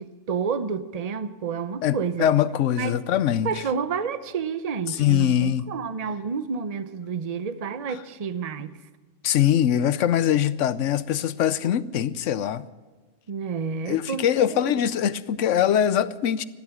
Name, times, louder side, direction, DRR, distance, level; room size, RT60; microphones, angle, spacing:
voice 1, 0.0-2.3 2.8-2.9 3.4-8.8 13.3-14.7, right 6 dB, 35° right, 0.7 m, -30 dB
voice 2, 1.8-3.5 4.9-5.6 9.2-12.6 13.9-16.4, left 10 dB, 70° left, 1.0 m, -22 dB
14.5 x 12.5 x 7.3 m
omnidirectional pair, 1.4 m